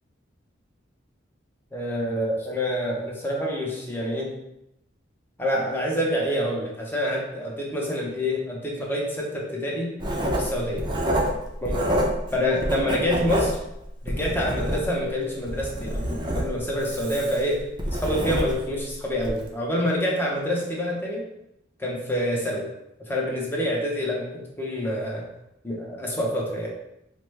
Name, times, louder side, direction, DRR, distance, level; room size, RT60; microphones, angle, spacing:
voice 1, 1.7-4.4 5.4-9.9 10.4-10.9 11.6-11.8 12.3-13.5 14.0-17.6 18.0-21.2 21.8-22.7 23.1-25.2 25.6-26.7, equal, 10° left, -3 dB, 0.8 m, -27 dB
Writing, 10.0-12.3 12.6-15.1 15.5-18.7 19.2-19.4, equal, 25° right, 0.6 m, -27 dB
4.9 x 2.1 x 3.2 m, 0.84 s
head